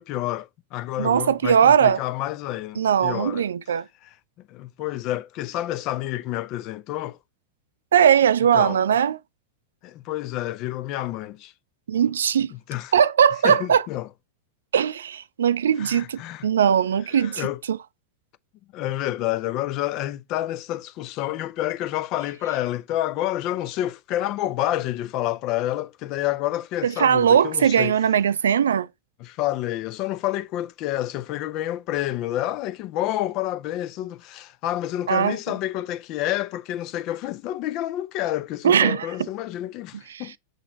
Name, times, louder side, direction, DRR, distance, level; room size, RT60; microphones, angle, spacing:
voice 1, 0.0-3.5 4.0-4.1 4.5-7.2 8.5-8.8 9.8-11.5 12.5-12.9 13.4-14.1 15.8-17.6 18.7-28.0 29.2-40.4, left 14 dB, 40° left, 0.4 m, -29 dB
voice 2, 1.0-2.0 2.8-3.8 7.9-9.2 11.9-12.5 12.9-13.8 14.7-17.8 26.8-28.9 35.1-35.3 38.6-39.1 40.1-40.3, right 8 dB, 65° right, 0.3 m, -19 dB
6.5 x 4.1 x 3.8 m
figure-of-eight pair, 90°, 0 cm